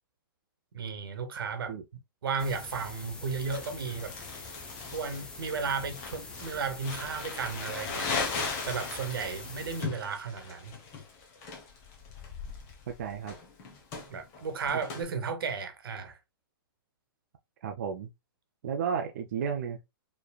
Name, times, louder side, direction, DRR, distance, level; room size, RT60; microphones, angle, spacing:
voice 1, 0.7-1.8 2.2-4.2 4.9-8.1 8.7-10.7 14.1-16.2, right 5 dB, 75° right, 1.2 m, -34 dB
sound 1, 2.4-9.8, left 3 dB, 5° left, 0.5 m, -45 dB
Crumpling crinkling, 3.5-15.0, left 4 dB, 20° left, 1.0 m, -38 dB
voice 2, 12.9-13.4 17.6-18.1 18.6-19.8, right 7 dB, 45° right, 0.5 m, -33 dB
4.7 x 3.2 x 2.3 m
hypercardioid pair, 170°, 12 cm